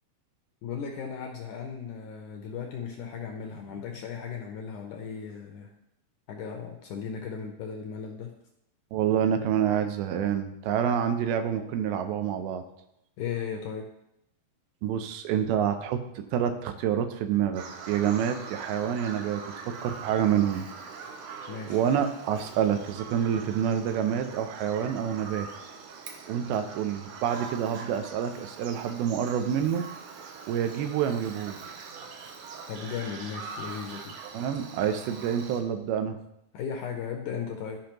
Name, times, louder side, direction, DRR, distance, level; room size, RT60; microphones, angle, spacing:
voice 1, 0.6-5.7 6.3-8.3 13.2-13.9 21.5-21.8 32.7-34.1 36.5-37.8, left 6 dB, 80° left, 2 dB, 1.9 m, -36 dB
voice 2, 8.9-12.7 14.8-20.7 21.7-25.5 26.3-29.9 30.5-31.9 34.3-36.2, right 9 dB, 90° right, 7 dB, 2.6 m, -27 dB
Bird vocalization bird call bird song, 17.5-35.6, right 5 dB, 70° right, 2.0 m, -43 dB
13.0 x 5.2 x 3.0 m, 0.82 s
omnidirectional pair, 4.3 m